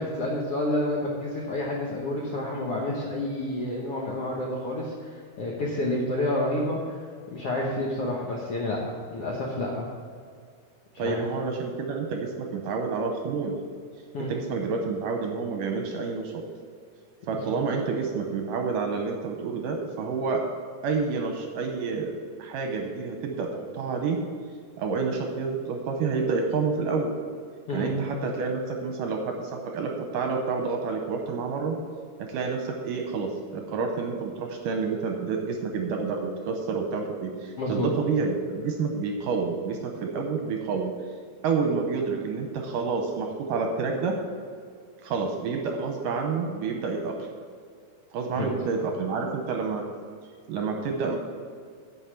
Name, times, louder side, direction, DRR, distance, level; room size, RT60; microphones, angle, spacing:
voice 1, 0.0-7.0 7.3-9.9 11.0-11.2 14.1-14.3 27.7-27.9 37.6-37.9 48.4-48.5, left 1 dB, 85° left, -3 dB, 1.3 m, -29 dB
voice 2, 11.0-13.5 14.2-16.4 17.3-20.4 20.8-22.1 22.4-24.2 24.8-27.1 27.7-31.8 32.2-40.9 41.4-44.2 45.0-47.1 48.1-49.8 50.5-51.2, right 4 dB, 75° right, 3 dB, 2.1 m, -29 dB
10.0 x 5.5 x 7.6 m, 2.1 s
omnidirectional pair, 4.4 m